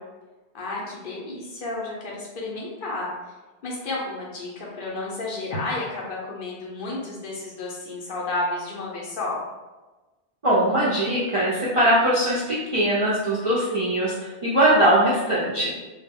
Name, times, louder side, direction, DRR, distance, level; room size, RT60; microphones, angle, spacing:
voice 1, 0.5-3.1 3.6-9.4, left 2 dB, 60° left, -4 dB, 0.7 m, -31 dB
voice 2, 10.4-15.7, right 1 dB, 50° right, -9 dB, 0.4 m, -21 dB
2.1 x 2.1 x 3.4 m, 1.2 s
omnidirectional pair, 1.1 m